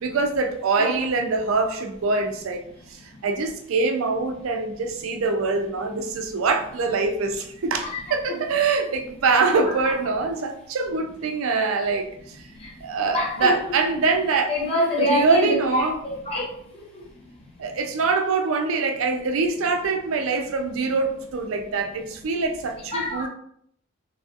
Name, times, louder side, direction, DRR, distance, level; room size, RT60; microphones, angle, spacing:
voice 1, 0.0-12.4 12.8-14.5 15.0-16.0 17.6-23.3, right 4 dB, 90° right, 0.4 m, -24 dB
voice 2, 13.1-13.5 14.5-16.4 16.9-17.0 22.9-23.3, left 1 dB, 30° left, 0.8 m, -25 dB
3.3 x 2.4 x 2.6 m
head